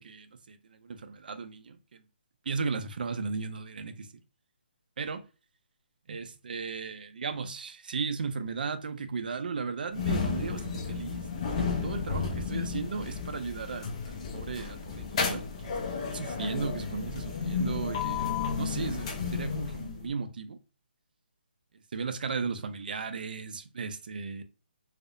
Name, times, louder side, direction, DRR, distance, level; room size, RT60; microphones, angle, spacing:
voice 1, 0.0-2.0 2.5-4.1 5.0-5.2 6.1-15.8 16.1-20.6 21.9-24.4, right 5 dB, 60° right, 0.4 m, -36 dB
sound 1, 9.9-20.1, left 5 dB, 35° left, 0.5 m, -33 dB
2.7 x 2.0 x 2.4 m
hypercardioid pair, 160°, 6 cm